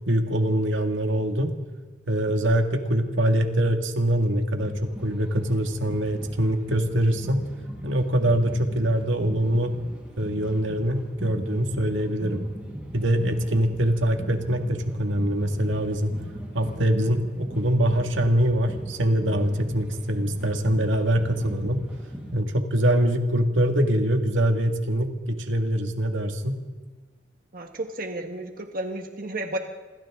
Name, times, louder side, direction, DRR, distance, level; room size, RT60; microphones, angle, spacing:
voice 1, 0.1-1.5 2.1-7.5 7.8-9.8 10.2-12.4 12.9-16.1 16.5-21.8 22.3-26.6, right 1 dB, 80° right, 5 dB, 2.0 m, -24 dB
sound 1, 4.6-22.3, equal, 5° right, 7.1 m, -39 dB
voice 2, 27.5-29.6, right 1 dB, 45° right, 4 dB, 1.4 m, -32 dB
27.0 x 26.5 x 3.7 m, 1.3 s
head